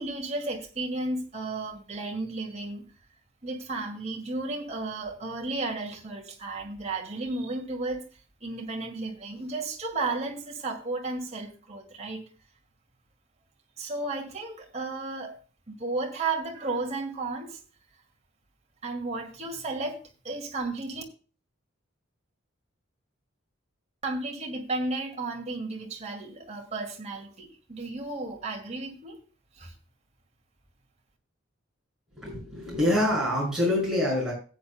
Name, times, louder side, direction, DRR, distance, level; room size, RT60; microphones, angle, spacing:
voice 1, 0.0-2.8 3.4-8.0 8.4-12.2 13.8-15.4 15.7-17.6 18.8-21.0 24.0-29.2 29.6-29.7, right 3 dB, 35° right, 2 dB, 2.1 m, -33 dB
voice 2, 32.2-34.3, left 1 dB, ahead, -4 dB, 6.3 m, -25 dB
16.5 x 8.8 x 2.2 m, 0.37 s
head